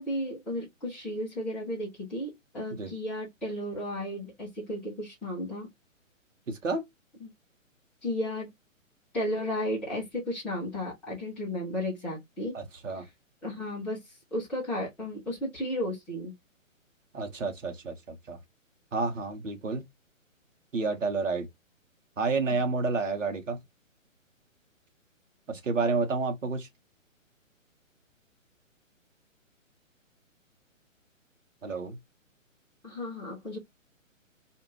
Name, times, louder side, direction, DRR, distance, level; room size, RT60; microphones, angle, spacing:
voice 1, 0.0-5.7 7.2-7.3 8.0-8.5 9.1-12.6 12.9-13.1 13.4-16.3 22.5-22.6 32.8-33.6, left 1 dB, 5° left, 0.6 m, -34 dB
voice 2, 6.5-6.8 12.5-13.0 17.1-18.4 18.9-19.8 20.7-21.5 22.2-23.6 25.5-26.7 31.6-32.0, right 4 dB, 70° right, 1.1 m, -30 dB
2.5 x 2.5 x 3.1 m
figure-of-eight pair, 130°, 40 cm